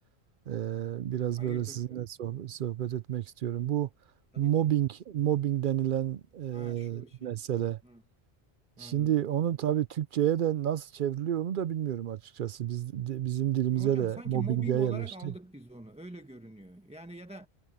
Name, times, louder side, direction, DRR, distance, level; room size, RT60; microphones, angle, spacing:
voice 1, 0.5-3.9 4.4-7.8 8.8-15.3, right 11 dB, 60° right, 0.6 m, -30 dB
voice 2, 1.4-2.1 4.3-4.7 6.5-7.3 7.8-8.0 8.8-9.2 13.7-17.5, right 1 dB, 5° right, 1.1 m, -44 dB
omnidirectional pair, 1.1 m